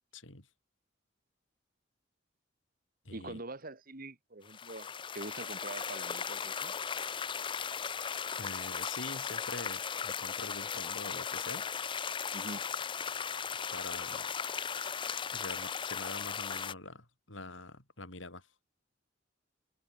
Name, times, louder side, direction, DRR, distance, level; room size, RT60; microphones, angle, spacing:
voice 1, 0.1-0.5 3.1-3.4 8.4-11.7 13.7-14.3 15.3-18.5, left 2 dB, 80° left, 7.2 m, -45 dB
voice 2, 3.1-4.9 5.1-6.7 12.3-12.6, right 2 dB, 50° right, 3.0 m, -44 dB
sound 1, 4.5-16.7, left 7 dB, 25° left, 0.5 m, -37 dB
head